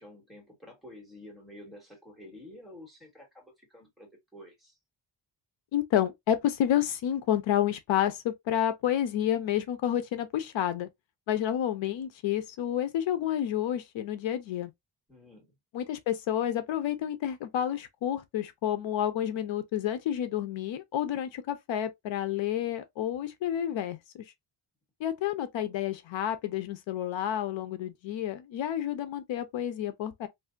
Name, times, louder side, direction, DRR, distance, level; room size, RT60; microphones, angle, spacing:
voice 1, 0.0-4.7 15.1-15.5, left 1 dB, ahead, 1.5 m, -50 dB
voice 2, 5.7-10.9 11.3-14.7 15.7-24.2 25.0-30.3, left 11 dB, 80° left, 0.7 m, -30 dB
3.4 x 2.5 x 2.5 m
wide cardioid pair, 155°, 45 cm